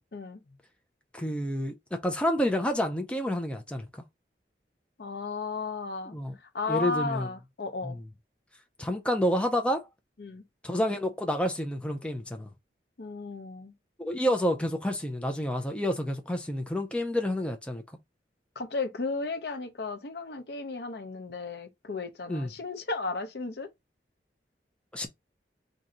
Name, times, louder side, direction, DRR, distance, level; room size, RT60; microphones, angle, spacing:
voice 1, 1.1-3.9 6.1-6.4 6.7-7.3 7.8-8.0 8.8-9.8 10.6-12.5 14.0-17.8 22.3-22.5 24.9-25.1, equal, 5° left, 0.4 m, -29 dB
voice 2, 5.0-6.2 6.5-8.0 10.2-10.4 13.0-13.7 18.6-23.7, left 3 dB, 65° left, 0.6 m, -34 dB
2.7 x 2.5 x 4.1 m
head